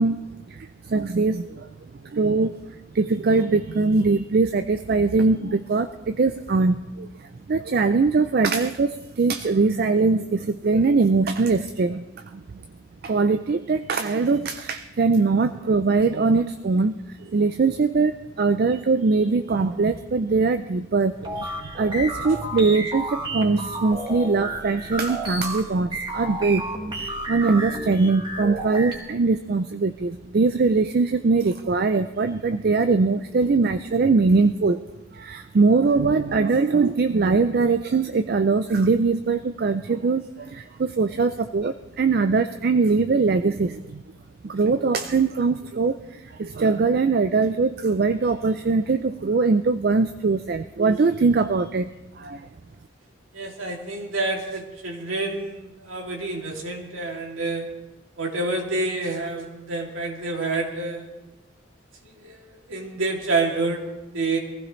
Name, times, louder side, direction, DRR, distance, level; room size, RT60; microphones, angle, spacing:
voice 1, 0.0-1.7 2.0-2.5 2.9-12.0 12.3-12.6 13.0-26.7 27.0-34.9 35.1-44.0 44.4-51.9 52.2-52.5, right 4 dB, 50° right, 10 dB, 0.4 m, -22 dB
sound 1, 21.2-28.9, right 1 dB, 25° right, 1.9 m, -31 dB
voice 2, 53.3-57.7 58.2-61.1 62.2-64.4, right 3 dB, 85° right, -1 dB, 2.6 m, -28 dB
22.5 x 15.0 x 3.2 m, 1.1 s
head